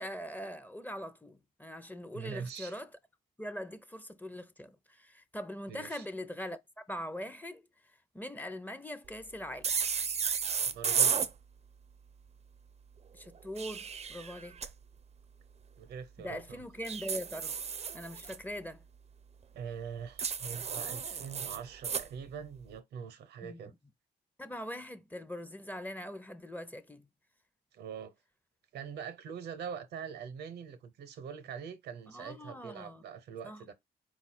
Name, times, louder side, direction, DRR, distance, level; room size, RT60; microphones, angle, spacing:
voice 1, 0.0-2.9 3.4-7.6 8.1-9.7 13.1-14.6 16.2-17.5 17.9-18.8 23.4-23.6 24.4-27.1 32.1-33.0 33.4-33.7, equal, 10° left, 0.6 m, -42 dB
voice 2, 2.1-2.8 5.7-6.0 10.7-11.2 15.8-16.6 19.5-23.7 27.7-28.1 28.7-33.7, right 7 dB, 85° right, 0.7 m, -43 dB
sound 1, 9.6-11.3 13.3-14.7 16.8-18.4 20.2-22.1, right 6 dB, 40° right, 0.5 m, -33 dB
4.1 x 2.3 x 4.3 m
cardioid pair, 65°, 17 cm